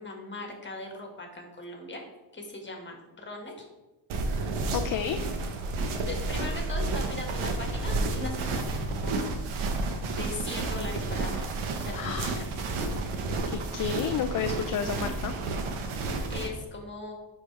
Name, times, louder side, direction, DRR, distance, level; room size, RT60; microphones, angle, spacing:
voice 1, 0.0-2.0 2.3-3.7 6.1-9.3 10.1-11.5 11.7-13.1 15.9-17.1, left 2 dB, 25° left, 2 dB, 1.7 m, -40 dB
sound 1, 4.1-16.5, right 3 dB, 85° right, 1.2 m, -31 dB
voice 2, 4.7-5.3 11.9-12.4 13.5-15.3, left 7 dB, 45° left, 7 dB, 0.5 m, -31 dB
11.5 x 4.5 x 3.3 m, 1.1 s
cardioid pair, 100°, 48 cm